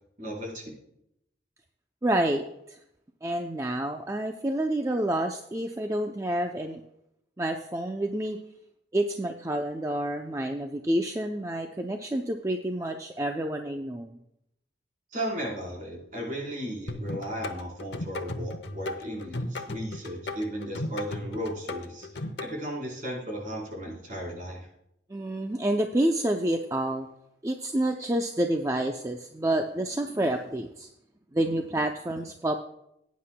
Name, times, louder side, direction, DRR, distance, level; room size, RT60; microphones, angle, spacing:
voice 1, 0.2-0.7 15.1-22.1 22.4-24.7, equal, 45° right, -2 dB, 4.0 m, -35 dB
voice 2, 2.0-2.8 3.2-6.8 7.4-8.4 8.9-14.2 25.1-27.1 27.4-30.9 31.3-32.6, right 1 dB, 15° right, 4 dB, 0.5 m, -28 dB
sound 1, 16.9-22.5, left 2 dB, 70° left, 0.9 m, -35 dB
18.0 x 9.4 x 2.2 m, 0.78 s
head